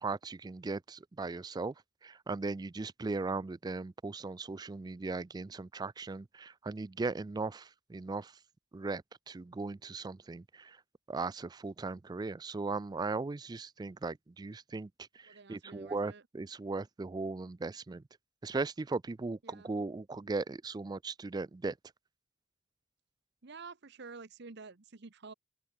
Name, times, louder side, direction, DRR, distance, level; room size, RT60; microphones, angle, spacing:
voice 1, 0.0-1.7 2.0-8.4 8.7-10.8 11.1-14.9 15.1-18.0 18.4-21.7, right 3 dB, 20° right, 0.3 m, -38 dB
voice 2, 15.2-16.2 19.4-19.7 23.4-25.3, right 4 dB, 55° right, 1.0 m, -50 dB
open air
head